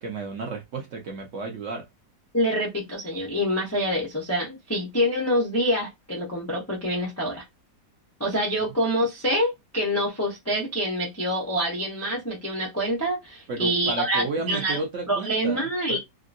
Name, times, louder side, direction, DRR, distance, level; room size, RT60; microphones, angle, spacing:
voice 1, 0.0-1.8 13.5-16.0, right 3 dB, 55° right, 1.0 m, -32 dB
voice 2, 2.3-7.4 8.2-14.8 15.1-16.0, equal, 20° left, 0.4 m, -26 dB
3.6 x 2.2 x 2.5 m
omnidirectional pair, 1.8 m